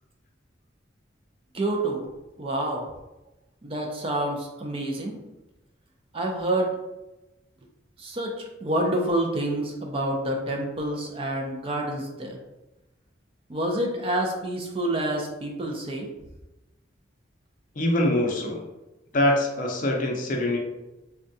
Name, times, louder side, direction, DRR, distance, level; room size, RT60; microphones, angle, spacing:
voice 1, 1.5-2.1 2.4-2.9 3.6-5.2 6.1-6.8 8.0-8.3 8.6-12.4 13.5-16.1, right 1 dB, 30° right, 1 dB, 0.4 m, -28 dB
voice 2, 17.8-18.6 19.1-20.6, left 1 dB, 45° left, 0 dB, 0.5 m, -24 dB
3.5 x 2.2 x 2.6 m, 0.99 s
head